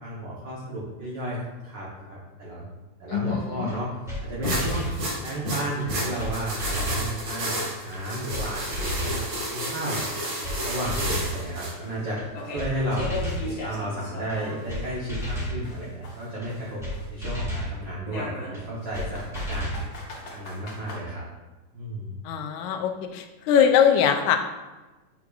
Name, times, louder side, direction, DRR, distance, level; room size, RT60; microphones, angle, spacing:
voice 1, 0.0-2.6 3.0-3.9 4.2-4.9 5.2-9.2 9.5-10.0 10.6-12.2 12.5-13.1 13.5-16.8 17.1-19.9 20.3-21.2 21.7-22.1, right 1 dB, 80° right, -5 dB, 1.0 m, -33 dB
voice 2, 3.1-3.7 22.3-24.4, left 8 dB, 80° left, 6 dB, 1.9 m, -22 dB
sound 1, 3.7-3.8 4.1-4.2 4.5-5.0 5.8-5.9 6.2-6.3 6.6-7.1 7.9-8.0 8.3-8.4 8.7-9.2 10.0-10.1 10.4-10.6 10.8-11.3 12.2-12.3 12.6-12.7 13.0-13.5 14.3-14.4 14.7-14.8 15.1-15.6 16.4-16.5 16.8-16.9 17.2-17.7 18.5-18.6 18.9-19.1 19.3-19.8, equal, ahead, 0.8 m, -31 dB
sound 2, 4.1-4.2 4.6-4.7 5.2-5.3 5.8-5.9 6.3-6.4 6.9-7.0 7.5-10.0 10.2-14.9 15.2-17.2 18.1-21.0, left 2 dB, 65° left, 0.9 m, -40 dB
sound 3, 4.4-11.7, equal, 60° right, 2.7 m, -31 dB
7.5 x 5.8 x 2.4 m, 1.2 s
omnidirectional pair, 3.5 m